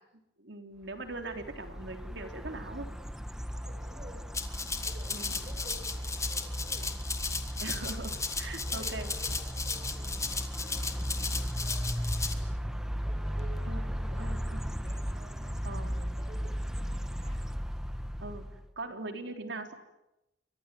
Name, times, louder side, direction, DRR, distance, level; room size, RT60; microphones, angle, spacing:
voice 1, 0.4-2.9 5.1-5.5 7.6-9.1 13.6-13.8 14.2-14.6 15.6-15.9 18.2-18.5 18.8-19.7, right 2 dB, 80° right, 5 dB, 3.7 m, -41 dB
sound 1, 1.1-18.7, equal, 5° right, 1.3 m, -36 dB
voice 2, 3.5-7.1 7.4-8.0 8.6-14.5 14.8-17.4 18.8-18.9, right 1 dB, 40° right, 0 dB, 6.1 m, -53 dB
Rattle (instrument), 4.3-12.3, left 4 dB, 20° left, 2.3 m, -36 dB
29.5 x 24.5 x 7.7 m, 0.92 s
head